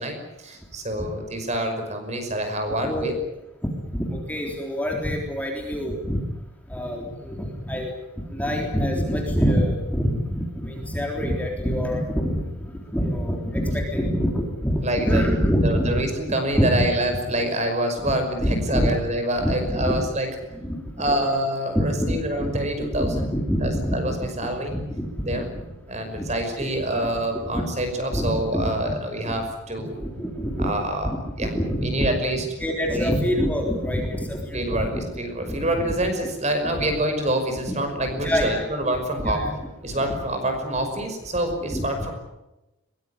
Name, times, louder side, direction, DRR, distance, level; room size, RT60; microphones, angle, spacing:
voice 1, 0.0-3.1 14.8-15.2 15.6-20.3 21.0-23.3 23.6-24.8 25.2-25.5 25.9-30.0 30.6-31.5 31.8-32.4 32.9-33.1 34.5-39.4 39.8-42.1, right 1 dB, 30° right, 6 dB, 5.6 m, -26 dB
voice 2, 2.8-3.1 3.9-6.2 6.7-7.9 8.3-12.4 12.9-16.1 16.5-16.9 18.0-18.1 18.4-19.0 19.4-20.0 20.5-21.0 21.7-22.5 22.9-24.2 24.7-25.4 26.2-26.3 26.6-26.8 27.5-27.6 28.1-28.9 30.2-30.7 31.0-32.1 32.6-35.0 35.4-36.0 36.7-36.8 37.7-37.8 38.1-38.7 39.2-39.5 39.9-40.1 41.7-41.9, equal, 5° left, 1 dB, 3.7 m, -25 dB
22.5 x 21.0 x 9.7 m, 0.95 s
head